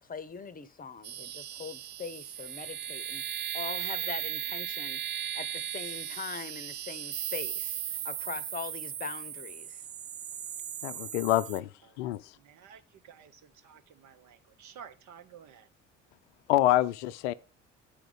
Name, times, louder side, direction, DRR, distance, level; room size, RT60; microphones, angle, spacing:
voice 1, 0.0-3.2 3.5-9.9, left 5 dB, 25° left, 0.8 m, -42 dB
sound 1, 1.0-11.6, right 10 dB, 30° right, 0.4 m, -37 dB
voice 2, 10.8-11.7 12.0-12.3 16.5-17.3, left 14 dB, 70° left, 0.5 m, -26 dB
voice 3, 11.9-15.7, right 8 dB, 50° right, 0.9 m, -53 dB
9.1 x 5.0 x 5.0 m
figure-of-eight pair, 55°, 36 cm